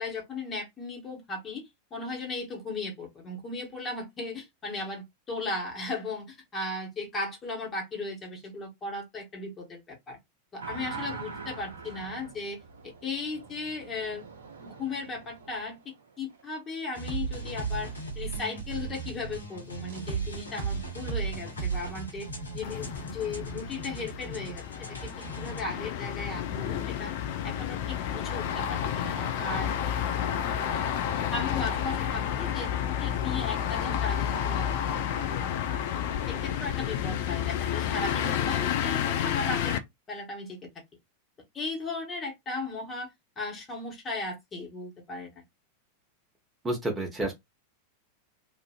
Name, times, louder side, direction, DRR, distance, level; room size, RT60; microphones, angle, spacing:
voice 1, 0.0-10.2 10.5-14.2 14.6-17.9 18.1-22.3 22.5-27.1 27.4-29.8 31.3-35.6 36.3-39.8 40.1-40.6 41.5-43.1 43.4-45.3, left 3 dB, 25° left, 1.3 m, -36 dB
sound 1, 10.6-16.4 19.9-20.0, right 4 dB, 65° right, 0.7 m, -43 dB
sound 2, 16.9-25.6, right 4 dB, 75° left, 0.9 m, -36 dB
sound 3, 22.6-39.8, left 9 dB, 50° left, 0.4 m, -30 dB
voice 2, 46.6-47.3, right 1 dB, 15° right, 1.1 m, -29 dB
2.9 x 2.4 x 2.4 m
figure-of-eight pair, 90°, 0 cm